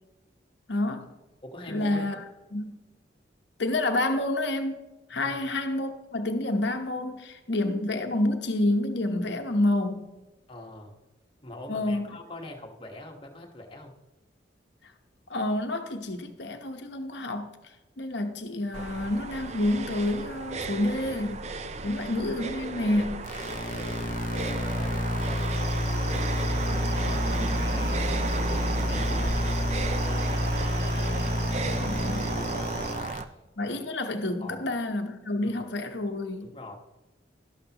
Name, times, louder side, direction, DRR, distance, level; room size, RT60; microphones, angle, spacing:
voice 1, 0.7-1.1 1.7-2.2 2.5-2.8 3.6-4.8 5.1-10.1 11.7-12.1 15.3-17.5 18.0-21.5 21.8-23.2 31.8-32.4 33.6-36.5, left 1 dB, 70° left, 5 dB, 1.0 m, -28 dB
voice 2, 1.4-2.2 5.1-5.5 10.5-10.9 11.4-14.0 21.8-22.0 24.3-27.3 27.5-32.0 32.3-33.4 34.4-34.6 35.4-35.5 36.4-36.8, left 1 dB, 30° left, 2 dB, 1.3 m, -43 dB
sound 1, 18.7-33.2, right 4 dB, 35° right, 0.5 m, -34 dB
sound 2, 23.3-33.2, left 1 dB, 45° left, 0.7 m, -29 dB
sound 3, 25.5-32.9, right 4 dB, 60° right, 1.4 m, -43 dB
12.0 x 12.0 x 2.9 m, 1.1 s
head